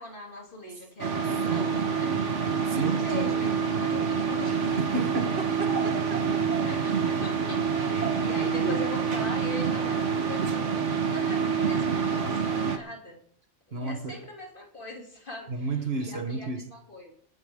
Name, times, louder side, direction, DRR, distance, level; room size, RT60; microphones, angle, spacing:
voice 1, 0.0-2.2 2.7-4.6 6.6-13.2 13.7-15.7 16.0-17.1, left 1 dB, 45° left, 3.1 m, -41 dB
sound 1, 1.0-12.8, right 6 dB, 80° right, 1.7 m, -27 dB
voice 2, 1.5-1.9 2.6-3.6 4.8-6.0 6.3-6.4 8.4-8.9 13.7-14.2 15.5-16.7, right 3 dB, 60° right, 1.5 m, -32 dB
26.5 x 9.5 x 3.7 m
omnidirectional pair, 1.2 m